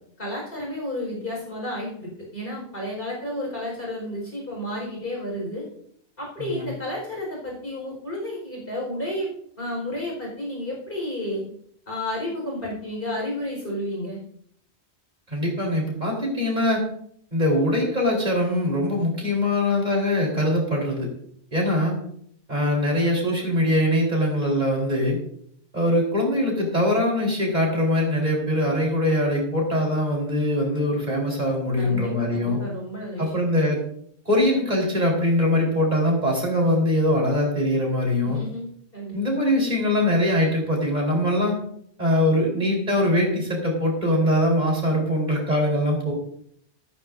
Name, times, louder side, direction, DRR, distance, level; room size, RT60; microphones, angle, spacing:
voice 1, 0.2-5.6 6.2-9.3 9.6-11.4 11.9-14.2 31.8-33.2 38.2-39.1, left 1 dB, 55° left, -3 dB, 5.0 m, -31 dB
voice 2, 6.4-6.7 15.3-16.8 17.3-21.1 21.5-21.9 22.5-25.2 25.7-32.6 33.2-33.8 34.3-38.4 39.1-41.5 42.0-46.1, left 1 dB, 40° right, -1 dB, 4.2 m, -22 dB
14.5 x 14.0 x 2.6 m, 0.67 s
omnidirectional pair, 1.1 m